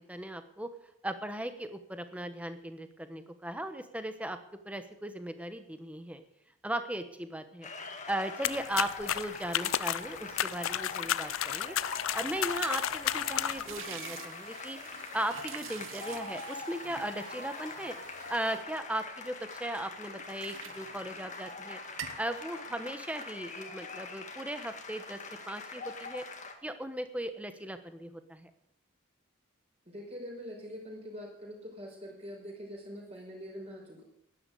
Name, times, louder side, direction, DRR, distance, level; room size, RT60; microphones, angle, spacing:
voice 1, 0.1-0.7 1.0-4.4 4.6-6.2 6.6-7.7 8.1-11.8 12.1-14.8 15.1-17.9 18.3-21.8 22.2-25.2 25.5-26.2 26.6-28.5, right 1 dB, 5° right, 9 dB, 1.1 m, -37 dB
sound 1, 7.6-26.5, left 3 dB, 35° left, 1.9 m, -43 dB
sound 2, 8.4-13.8, left 11 dB, 75° left, 0.5 m, -32 dB
sound 3, 11.8-19.6 20.0-21.6 21.9-22.3, right 8 dB, 75° right, 1.2 m, -48 dB
voice 2, 29.9-34.0, equal, 30° right, -1 dB, 5.4 m, -44 dB
12.0 x 11.0 x 8.4 m, 0.77 s
head